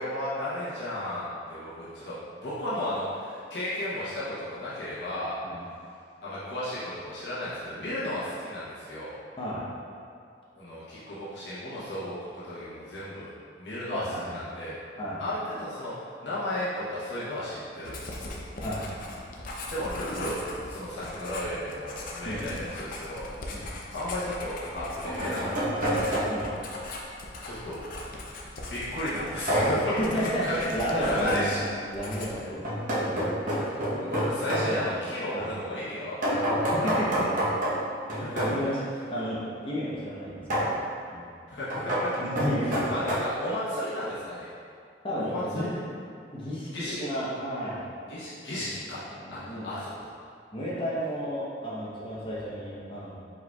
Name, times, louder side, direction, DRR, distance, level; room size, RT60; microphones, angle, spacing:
voice 1, 0.0-5.4 6.2-9.2 10.6-13.3 13.6-14.0 14.3-14.7 15.2-15.9 16.2-18.3 19.6-26.2 27.4-27.9 28.6-30.6 31.0-31.6 33.5-33.7 34.0-37.3 38.2-38.4 41.5-42.2 42.6-44.5 45.2-45.7 46.7-47.0 48.1-49.0 49.3-50.1, left 1 dB, 80° left, -10 dB, 1.0 m, -34 dB
voice 2, 13.9-14.4 15.0-15.2 18.6-18.8 22.2-22.7 23.5-23.6 26.3-26.5 29.9-31.6 31.9-32.6 33.1-33.3 34.7-35.0 35.3-35.5 36.8-37.2 38.1-38.8 39.1-40.8 41.1-41.2 42.2-42.9 45.0-45.7 46.3-47.8 48.5-48.7 49.1-49.7 50.5-53.2, equal, 30° left, -7 dB, 0.8 m, -32 dB
Writing, 17.8-31.6 31.9-32.5, left 2 dB, 50° left, 0.5 m, -40 dB
sound 1, 23.2-23.3 24.6-26.6 29.5-30.0 32.6-34.7 36.2-38.6 40.5-40.8 41.7-43.1, equal, 50° right, 0.9 m, -28 dB
4.7 x 4.3 x 2.3 m, 2.4 s
head